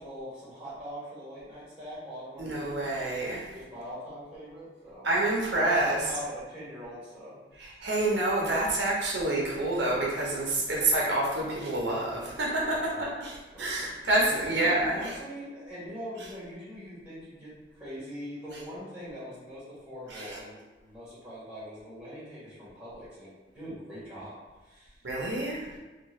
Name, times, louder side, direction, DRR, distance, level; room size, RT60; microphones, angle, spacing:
voice 1, 0.0-2.8 3.5-5.1 5.5-7.9 10.5-10.6 12.6-13.1 13.5-24.4 24.6-25.0, equal, 5° right, -10 dB, 1.2 m, -42 dB
voice 2, 2.4-3.4 5.0-6.0 7.6-15.1 20.1-20.4 25.0-25.7, right 2 dB, 80° right, -4 dB, 0.7 m, -28 dB
2.7 x 2.3 x 2.9 m, 1.2 s
head